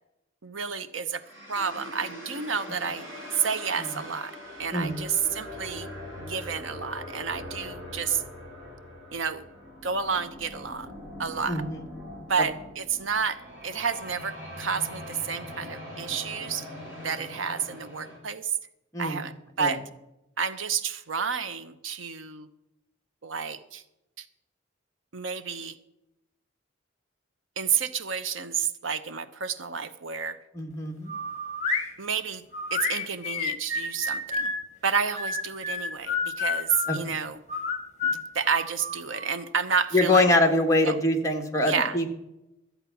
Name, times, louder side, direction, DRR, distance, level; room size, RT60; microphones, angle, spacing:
voice 1, 0.4-1.2 1.5-3.0 3.3-4.3 4.6-5.9 6.2-8.2 9.1-9.4 9.8-10.9 11.2-11.6 12.3-16.7 17.0-18.6 19.0-19.8 20.4-22.5 23.2-23.8 24.2-24.3 25.1-25.8 27.6-30.4 32.0-32.4 32.7-34.5 34.8-37.4 38.0-40.3 40.8-41.0 41.6-42.0, right 6 dB, 85° right, 11 dB, 0.9 m, -30 dB
sound 1, 1.2-18.2, left 1 dB, 15° right, 5.5 m, -42 dB
voice 2, 4.7-5.0 11.5-11.8 18.9-19.2 19.6-19.7 30.5-31.1 36.9-37.0 39.9-42.1, left 2 dB, 15° left, 3 dB, 1.4 m, -23 dB
sound 2, 31.1-31.9 32.5-34.6 35.2-37.0 37.5-39.3, left 3 dB, 40° left, 1.7 m, -30 dB
13.0 x 8.1 x 5.9 m, 0.90 s
head